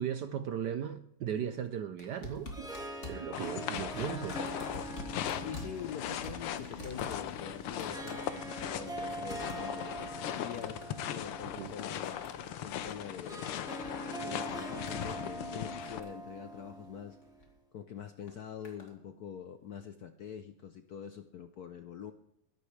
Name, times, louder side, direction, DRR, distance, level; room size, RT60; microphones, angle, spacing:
voice 1, 0.0-2.7 3.1-4.4 11.6-11.7, right 9 dB, 70° right, 10 dB, 1.0 m, -37 dB
sound 1, 2.0-13.9 14.2-15.2 15.6-16.3 17.2-17.5 18.3-18.9 19.8-19.9, left 1 dB, 35° left, 2.6 m, -49 dB
Harp, 2.2-17.5, right 1 dB, ahead, 1.4 m, -44 dB
sound 2, 3.3-16.0, left 10 dB, 85° left, 1.7 m, -39 dB
voice 2, 5.4-13.6 14.2-17.2 17.7-22.1, left 8 dB, 70° left, 8 dB, 0.9 m, -45 dB
21.5 x 11.0 x 3.3 m, 0.78 s
omnidirectional pair, 2.4 m